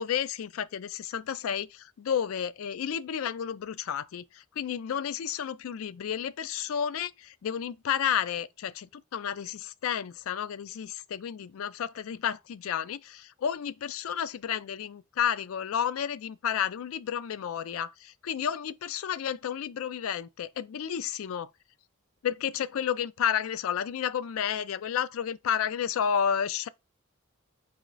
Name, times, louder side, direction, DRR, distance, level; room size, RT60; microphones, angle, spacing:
voice 1, 0.0-21.5 22.2-26.7, left 8 dB, 80° left, 0.4 m, -31 dB
4.3 x 3.0 x 3.8 m
head